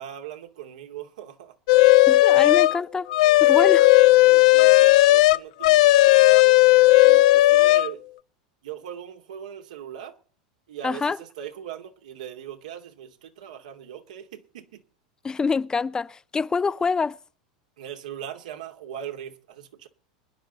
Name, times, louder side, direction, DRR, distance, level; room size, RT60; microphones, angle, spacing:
voice 1, 0.0-1.6 2.4-2.5 3.6-3.9 4.2-6.6 7.0-8.0 8.6-10.2 10.7-14.8 17.8-19.9, right 10 dB, 75° right, 2.4 m, -40 dB
sound 1, 1.7-2.8 3.1-7.9, left 18 dB, 65° left, 0.6 m, -15 dB
voice 2, 2.1-3.1 3.4-3.9 10.8-11.2 15.2-17.2, left 5 dB, 20° left, 0.6 m, -25 dB
24.5 x 11.0 x 4.1 m
hypercardioid pair, 95°, 4 cm